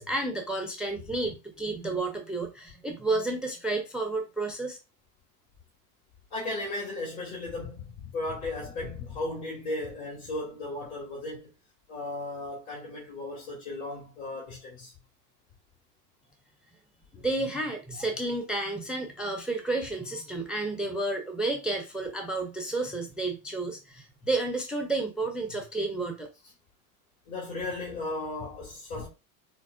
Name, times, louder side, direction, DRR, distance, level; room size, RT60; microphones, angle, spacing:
voice 1, 0.0-4.8 17.1-26.3, right 2 dB, ahead, 0.4 m, -31 dB
voice 2, 6.3-11.5 11.9-14.9 27.3-29.1, left 2 dB, 55° left, 2.0 m, -35 dB
4.4 x 2.1 x 2.4 m
hypercardioid pair, 95°, 47 cm